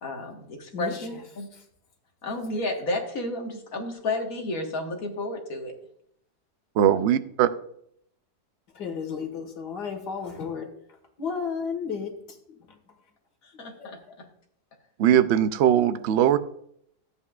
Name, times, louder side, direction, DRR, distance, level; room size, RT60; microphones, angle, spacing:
voice 1, 0.0-1.5 2.2-5.7 13.4-14.3, left 2 dB, 55° left, 2 dB, 1.9 m, -32 dB
voice 2, 6.8-7.5 15.0-16.4, right 10 dB, 75° right, 12 dB, 0.6 m, -20 dB
voice 3, 8.8-10.7 11.2-12.1 12.5-12.6 13.5-13.9, left 6 dB, 85° left, 4 dB, 2.2 m, -33 dB
13.5 x 8.3 x 2.4 m, 0.69 s
omnidirectional pair, 1.7 m